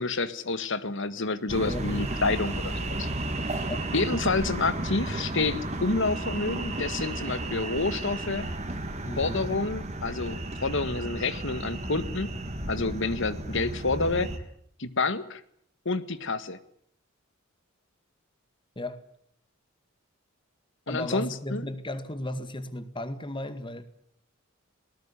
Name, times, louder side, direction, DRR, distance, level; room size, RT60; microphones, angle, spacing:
voice 1, 0.0-3.1 3.9-8.4 9.2-12.3 12.7-14.3 14.8-15.4 15.9-16.6 20.9-21.7, left 3 dB, 65° left, 14 dB, 1.8 m, -29 dB
sound 1, 1.5-14.4, right 1 dB, 35° right, 3.1 m, -33 dB
sound 2, 1.9-9.6, right 1 dB, 10° right, 2.7 m, -48 dB
voice 2, 9.0-9.5 18.8-19.0 20.9-23.9, left 1 dB, 25° left, 11 dB, 2.1 m, -35 dB
20.5 x 19.0 x 10.0 m, 0.67 s
head